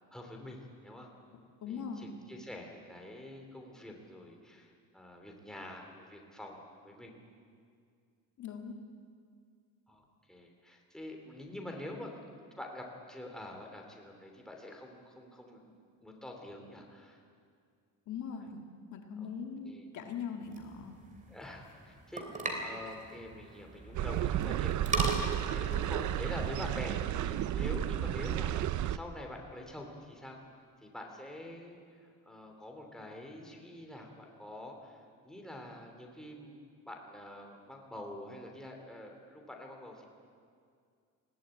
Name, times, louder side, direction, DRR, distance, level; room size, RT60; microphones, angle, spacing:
voice 1, 0.1-1.1 1.7-7.2 9.9-15.7 16.0-17.2 19.2-19.3 19.6-19.8 21.3-30.4 30.8-40.1, left 1 dB, ahead, 1 dB, 2.9 m, -46 dB
voice 2, 1.6-2.2 8.4-8.8 18.1-18.6 18.9-21.0, left 6 dB, 55° left, 3 dB, 2.0 m, -41 dB
sound 1, 20.4-26.8, right 2 dB, 20° right, 3.0 m, -39 dB
sound 2, 23.9-29.0, right 11 dB, 60° right, 0.7 m, -32 dB
20.5 x 16.5 x 8.9 m, 2.2 s
cardioid pair, 150°, 34 cm